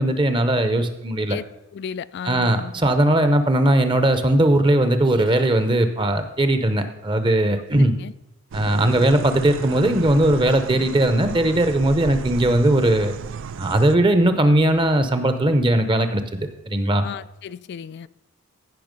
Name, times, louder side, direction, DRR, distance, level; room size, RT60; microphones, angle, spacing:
voice 1, 0.0-1.4 2.2-7.9 8.5-13.1 13.6-16.2 16.7-17.0, right 1 dB, 20° right, 0.8 m, -19 dB
voice 2, 1.7-2.7 8.0-8.1 17.0-18.1, left 7 dB, 50° left, 0.3 m, -34 dB
sound 1, 8.5-14.0, right 6 dB, 60° right, 0.4 m, -33 dB
15.5 x 5.8 x 5.2 m
head